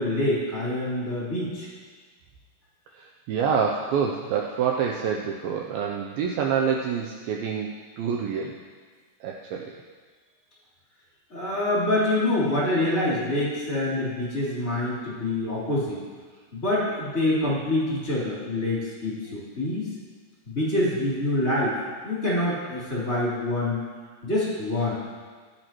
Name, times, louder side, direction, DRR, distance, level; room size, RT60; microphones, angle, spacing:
voice 1, 0.0-1.7 11.3-16.0 16.5-19.9 20.5-21.8 22.0-23.8 24.2-25.0, left 1 dB, 20° left, -9 dB, 3.6 m, -26 dB
voice 2, 2.9-8.6 9.2-9.8, right 7 dB, 80° right, 1 dB, 2.2 m, -27 dB
15.0 x 11.5 x 3.0 m, 1.5 s
omnidirectional pair, 4.7 m